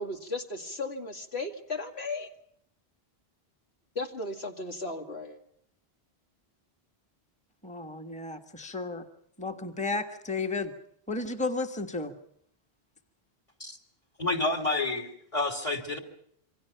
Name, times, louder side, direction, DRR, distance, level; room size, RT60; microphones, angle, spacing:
voice 1, 0.0-2.3 4.0-5.4, left 2 dB, 80° left, 4 dB, 2.6 m, -35 dB
voice 2, 7.6-9.0 9.4-10.7 11.1-12.1, left 3 dB, 5° left, 5 dB, 1.5 m, -33 dB
voice 3, 14.2-16.0, left 2 dB, 30° left, 8 dB, 3.4 m, -29 dB
27.5 x 24.5 x 5.8 m, 0.69 s
omnidirectional pair, 1.1 m